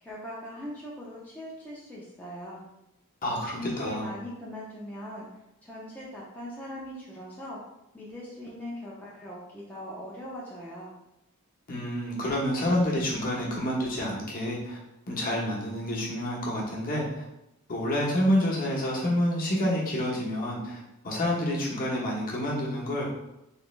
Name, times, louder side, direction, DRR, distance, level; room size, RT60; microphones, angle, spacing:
voice 1, 0.0-2.7 3.5-5.3 5.6-7.6 7.9-10.9, left 1 dB, 10° left, -7 dB, 0.6 m, -40 dB
voice 2, 3.2-4.1 11.7-14.8 15.1-17.2 17.7-20.8 21.0-23.1, left 1 dB, 40° left, -3 dB, 0.9 m, -28 dB
3.3 x 3.0 x 3.1 m, 0.87 s
head